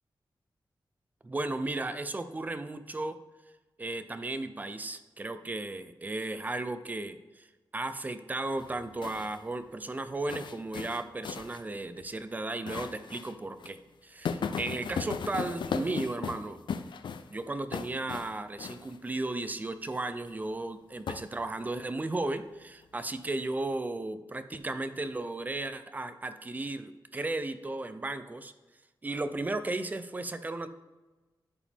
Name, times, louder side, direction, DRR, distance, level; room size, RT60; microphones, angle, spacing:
voice 1, 1.2-3.2 3.8-7.5 7.7-16.6 17.3-28.5 29.0-30.7, right 2 dB, 20° right, 11 dB, 0.4 m, -35 dB
sound 1, 8.6-9.4 10.3-11.6 12.0-12.1 12.7-13.3 13.6-13.7 14.3-17.4 17.7-18.3 18.6-19.0 21.1-21.7, left 6 dB, 75° left, 0.4 m, -36 dB
11.0 x 5.0 x 3.5 m, 1.2 s
wide cardioid pair, 165°, 8 cm